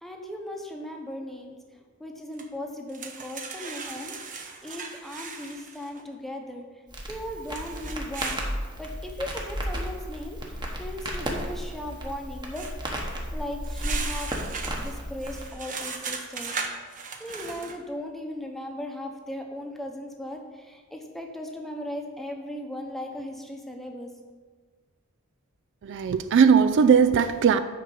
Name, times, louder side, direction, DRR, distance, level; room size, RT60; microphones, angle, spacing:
voice 1, 0.0-1.6 2.0-6.6 7.1-8.4 8.8-10.4 10.8-12.7 13.3-14.3 14.7-16.6 17.2-24.1, left 1 dB, ahead, 1 dB, 0.9 m, -37 dB
sound 1, 2.4-2.5 2.9-6.0 7.5-8.4 12.5-12.7 13.6-17.8, right 5 dB, 40° right, 0.8 m, -37 dB
Crackle, 6.9-15.5, equal, 20° right, 1.1 m, -34 dB
voice 2, 25.8-27.6, right 6 dB, 60° right, 11 dB, 0.3 m, -19 dB
6.6 x 5.1 x 6.9 m, 1.5 s
head